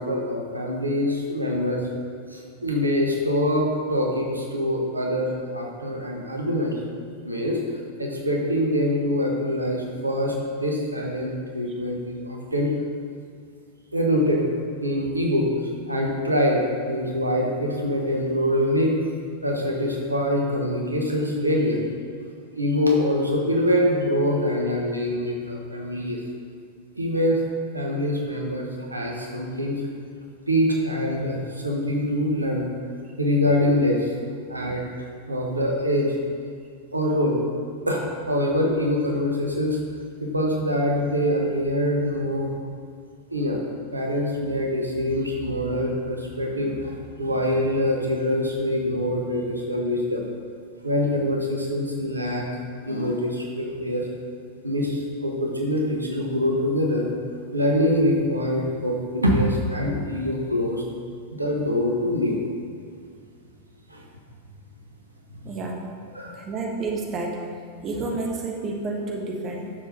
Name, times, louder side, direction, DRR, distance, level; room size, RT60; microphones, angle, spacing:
voice 1, 0.0-1.9 2.3-6.8 7.2-7.6 8.0-12.7 13.9-14.4 14.8-15.5 15.9-19.0 19.4-21.8 22.5-26.2 26.9-27.4 27.7-29.8 30.5-32.6 33.2-34.2 34.5-36.2 36.9-37.4 37.9-39.8 40.2-42.5 43.3-43.6 43.9-50.2 50.8-52.4 52.8-54.1 54.6-57.1 57.5-60.8 61.3-62.4 63.9-64.0 66.1-66.4, left 1 dB, 85° right, -1 dB, 1.3 m, -24 dB
voice 2, 65.4-65.9 66.3-67.5 67.8-69.7, right 3 dB, 30° right, 0 dB, 1.3 m, -30 dB
9.9 x 7.0 x 4.0 m, 2.2 s
figure-of-eight pair, 90°, 0 cm